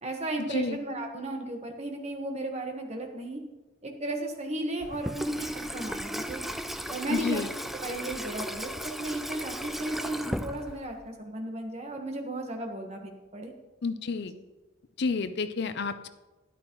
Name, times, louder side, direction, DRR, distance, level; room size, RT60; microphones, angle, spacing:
voice 1, 0.0-3.4 3.8-6.4 6.9-13.5, right 1 dB, 35° right, 3 dB, 1.3 m, -35 dB
Water tap faucet / Sink (filling or washing), 4.8-11.1, equal, ahead, 0.3 m, -36 dB
voice 2, 7.1-7.5 13.8-14.3 15.0-16.1, left 4 dB, 55° left, 11 dB, 0.5 m, -30 dB
12.5 x 11.0 x 3.0 m, 1.1 s
head